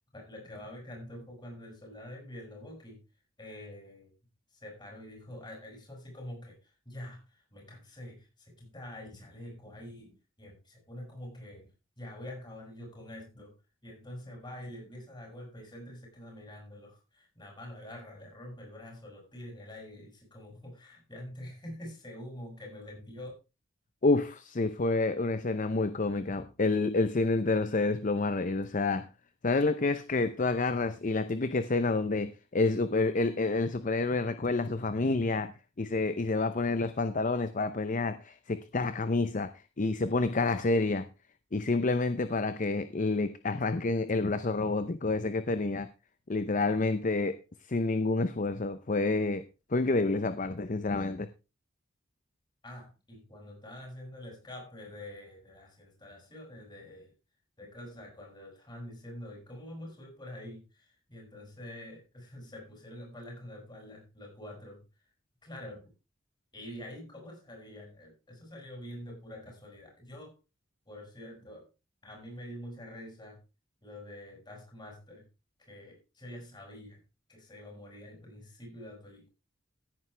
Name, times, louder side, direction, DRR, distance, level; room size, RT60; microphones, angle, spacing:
voice 1, 0.1-3.0 3.4-4.1 4.6-6.6 6.9-13.5 13.8-23.3 52.6-57.1 57.6-64.8 65.4-65.9 66.5-70.4 70.9-71.7 72.0-73.4 73.8-75.3 75.6-77.0 77.3-79.3, left 1 dB, 25° left, 0 dB, 6.9 m, -46 dB
voice 2, 24.0-29.1 29.4-35.5 35.8-39.5 39.8-41.1 41.5-45.9 46.3-47.4 47.7-49.4 49.7-51.3, left 3 dB, 40° left, 12 dB, 0.7 m, -28 dB
16.0 x 9.4 x 3.3 m, 0.30 s
head